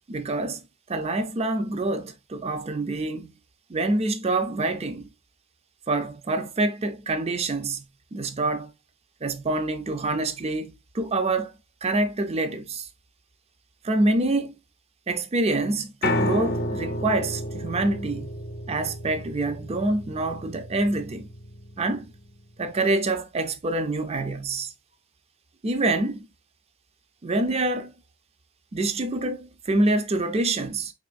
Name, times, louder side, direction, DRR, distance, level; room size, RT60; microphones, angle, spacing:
voice 1, 0.1-0.6 0.9-3.3 3.7-5.1 5.9-7.8 8.1-8.7 9.2-11.5 11.8-12.9 13.8-14.5 15.1-18.3 18.7-21.3 21.8-22.1 22.6-24.7 25.6-26.3 27.2-27.9 28.7-30.9, right 2 dB, 30° right, 0.5 m, -26 dB
Piano, 16.0-22.2, left 1 dB, 50° left, 0.6 m, -31 dB
4.2 x 3.0 x 2.4 m
head